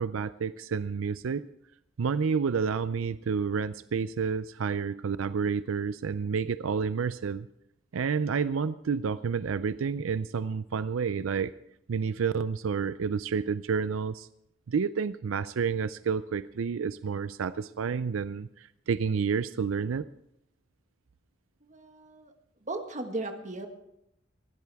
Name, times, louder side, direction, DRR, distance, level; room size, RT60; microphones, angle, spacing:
voice 1, 0.0-1.5 2.0-7.5 7.9-11.5 11.9-14.3 14.7-20.1, right 6 dB, 85° right, 14 dB, 0.5 m, -29 dB
voice 2, 21.6-22.3 22.6-23.7, right 2 dB, 40° right, 5 dB, 1.6 m, -36 dB
20.0 x 15.5 x 3.5 m, 0.81 s
head